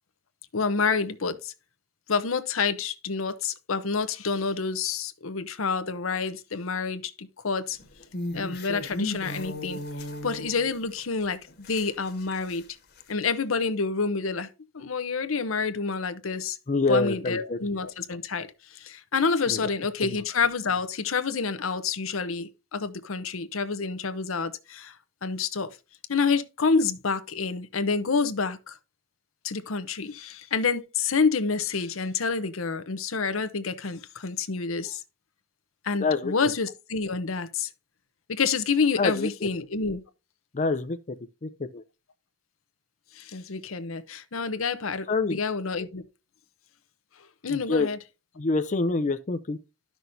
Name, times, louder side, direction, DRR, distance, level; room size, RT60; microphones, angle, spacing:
voice 1, 0.5-1.5 2.1-7.8 8.3-9.8 10.2-12.6 13.1-14.5 14.7-16.6 16.9-25.0 25.2-25.7 26.1-28.8 29.4-35.0 35.8-37.7 38.3-40.0 43.1-46.0 47.4-48.0, left 5 dB, 85° left, 0.8 m, -28 dB
sound 1, 7.7-11.0 11.5-12.6 13.0-13.1, left 1 dB, 55° left, 1.5 m, -36 dB
voice 2, 16.7-17.6 19.5-19.7 20.0-20.1 36.0-36.3 39.0-39.5 40.5-41.0 41.4-41.8 45.1-45.4 47.5-47.9 48.4-49.6, left 3 dB, 40° left, 0.6 m, -26 dB
12.0 x 6.0 x 2.7 m
head